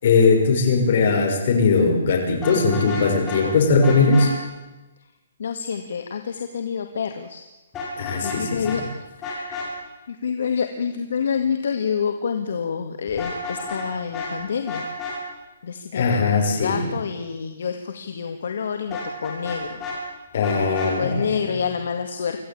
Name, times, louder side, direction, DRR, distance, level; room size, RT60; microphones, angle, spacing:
voice 1, 0.0-4.3 8.0-8.8 15.9-16.9 20.3-21.2, left 4 dB, 45° left, 2 dB, 6.0 m, -19 dB
Vehicle horn car horn honking, 2.4-3.4 3.8-4.3 7.7-8.4 8.6-8.8 9.2-9.7 13.1-13.9 14.1-14.3 14.7-15.2 18.9-20.0 20.4-20.9, left 4 dB, 15° left, 7.1 m, -31 dB
voice 2, 5.4-7.4 8.2-9.7 10.1-14.9 15.6-19.9 20.6-22.4, left 6 dB, 65° left, 6 dB, 2.1 m, -28 dB
25.5 x 15.5 x 8.8 m, 1.1 s
hypercardioid pair, 170°, 0 cm